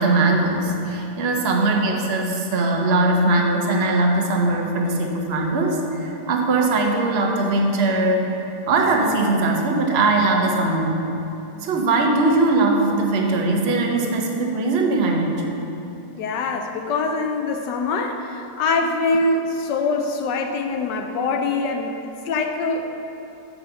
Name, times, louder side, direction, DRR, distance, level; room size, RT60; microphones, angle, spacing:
voice 1, 0.0-8.3 8.7-11.0 11.6-15.3, right 2 dB, 45° right, 1 dB, 1.0 m, -20 dB
voice 2, 16.2-22.9, left 3 dB, 80° left, 4 dB, 1.2 m, -24 dB
7.5 x 6.3 x 6.4 m, 2.9 s
omnidirectional pair, 1.8 m